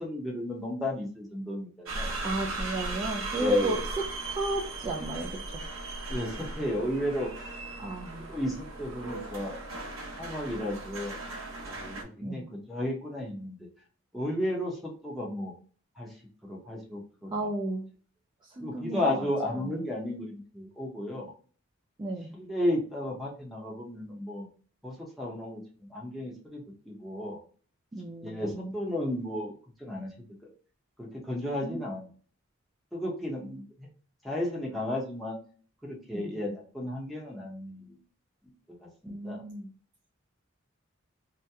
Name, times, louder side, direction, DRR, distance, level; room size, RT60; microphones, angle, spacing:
voice 1, 0.0-2.1 3.4-3.8 6.1-7.3 8.1-9.6 10.2-11.2 11.7-13.6 14.1-15.5 16.0-16.1 16.4-17.5 18.6-21.3 22.3-24.5 24.8-25.6 25.9-27.4 28.2-29.5 29.8-30.1 31.0-32.1 32.9-33.9 34.2-35.4 35.8-37.9 38.8-39.4, left 1 dB, ahead, -3 dB, 0.8 m, -33 dB
sound 1, 1.9-12.0, right 2 dB, 80° right, 0.8 m, -37 dB
voice 2, 2.2-3.8 4.3-5.6 7.8-8.3 12.2-12.4 17.3-17.9 18.4-19.3 19.5-19.8 22.0-22.3 27.9-28.7 31.6-31.8 36.1-36.3 39.1-39.7, right 2 dB, 20° right, -2 dB, 0.3 m, -34 dB
2.8 x 2.1 x 3.4 m, 0.43 s
head